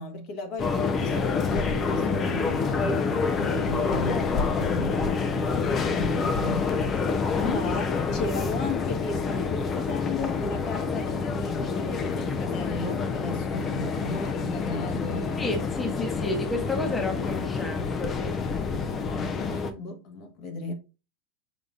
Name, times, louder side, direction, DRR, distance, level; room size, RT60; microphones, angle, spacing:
voice 1, 0.0-7.1 7.4-15.5 19.1-20.7, left 2 dB, 50° left, 1.2 m, -35 dB
sound 1, 0.6-19.7, left 5 dB, 30° left, 0.6 m, -27 dB
voice 2, 15.4-18.4, left 2 dB, 15° left, 1.0 m, -32 dB
5.3 x 3.9 x 2.5 m
hypercardioid pair, 115°, 0 cm